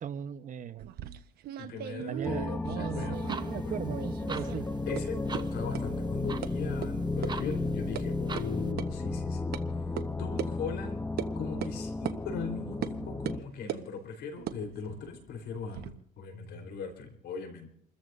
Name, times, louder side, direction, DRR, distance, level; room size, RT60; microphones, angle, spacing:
voice 1, 0.0-0.9 2.1-4.7, right 8 dB, 50° right, 12 dB, 0.9 m, -38 dB
sound 1, 0.8-3.6 3.9-4.6 5.0-5.1 5.3-5.4 5.7-5.8 6.4-6.5 6.8-6.9 7.2-7.3 7.7-8.0 8.4-8.5 8.8-8.9 9.5-9.6 10.0-10.1 10.4-10.5 11.2-11.3 11.6-11.8 12.1-12.2 12.8-13.0 13.3-13.9 14.4-15.9, right 11 dB, 70° right, 1.1 m, -38 dB
voice 2, 1.6-3.8 4.3-4.5 4.9-9.5 9.9-11.0 11.4-17.7, left 5 dB, 75° left, 5 dB, 4.0 m, -40 dB
sound 2, 2.2-13.4, left 3 dB, 15° left, 0.8 m, -34 dB
sound 3, 3.1-8.7, right 5 dB, 25° right, 1.1 m, -45 dB
29.5 x 14.0 x 2.6 m, 0.67 s
cardioid pair, 110°, 17 cm